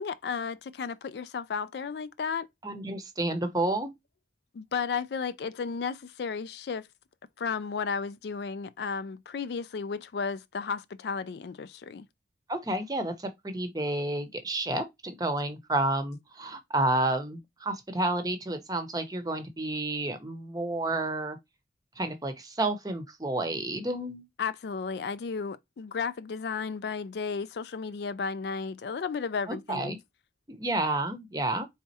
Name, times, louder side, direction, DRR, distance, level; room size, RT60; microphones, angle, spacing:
voice 1, 0.0-2.5 2.7-2.8 4.5-6.9 7.4-12.1 24.4-30.0, left 5 dB, 70° left, 0.4 m, -33 dB
voice 2, 2.6-3.9 12.5-21.4 22.0-24.3 29.5-30.0 30.5-31.7, right 2 dB, 20° right, 0.7 m, -30 dB
4.2 x 3.5 x 2.7 m
head